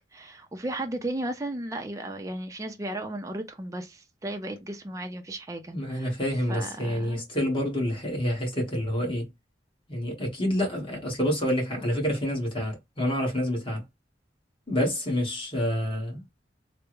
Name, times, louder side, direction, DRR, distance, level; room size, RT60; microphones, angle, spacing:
voice 1, 0.1-6.1 6.5-7.2, right 1 dB, 20° right, 0.4 m, -35 dB
voice 2, 5.7-9.3 9.9-13.8 14.7-16.2, equal, 30° left, 1.4 m, -28 dB
3.4 x 2.1 x 3.0 m
head